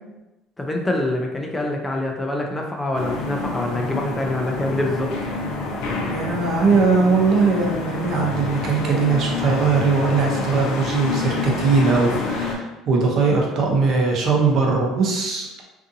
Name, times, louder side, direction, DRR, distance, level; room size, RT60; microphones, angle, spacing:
voice 1, 0.6-5.1, left 1 dB, 15° left, 1 dB, 0.4 m, -25 dB
sound 1, 2.9-12.5, left 3 dB, 75° left, 0.5 m, -28 dB
voice 2, 6.1-15.5, right 4 dB, 55° right, -1 dB, 0.7 m, -20 dB
2.6 x 2.5 x 2.6 m, 1.0 s
cardioid pair, 110°, 0 cm